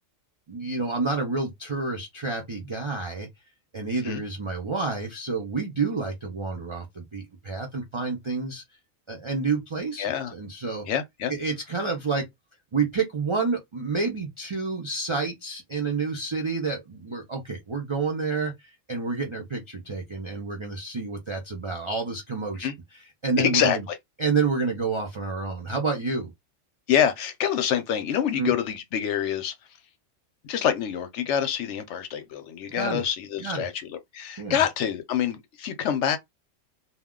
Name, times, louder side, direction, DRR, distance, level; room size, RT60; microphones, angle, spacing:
voice 1, 0.5-3.3 3.7-8.6 9.1-10.9 11.3-12.3 12.7-23.9 24.2-26.3 28.3-28.5 32.7-33.0 33.4-33.7 34.4-34.6, right 4 dB, 45° right, 0.3 m, -29 dB
voice 2, 10.0-10.3 10.9-11.3 22.6-22.7 23.4-23.8 26.9-29.5 30.5-36.2, left 9 dB, 70° left, 0.8 m, -26 dB
2.3 x 2.1 x 3.6 m
omnidirectional pair, 1.4 m